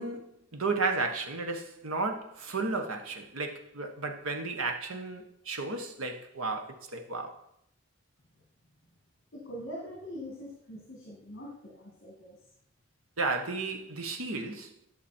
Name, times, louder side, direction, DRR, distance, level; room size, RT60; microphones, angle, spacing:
voice 1, 0.0-7.4 13.2-14.7, right 3 dB, 80° right, 1.3 m, -33 dB
voice 2, 9.3-12.4, equal, 55° left, 2.1 m, -43 dB
11.5 x 6.2 x 4.4 m
head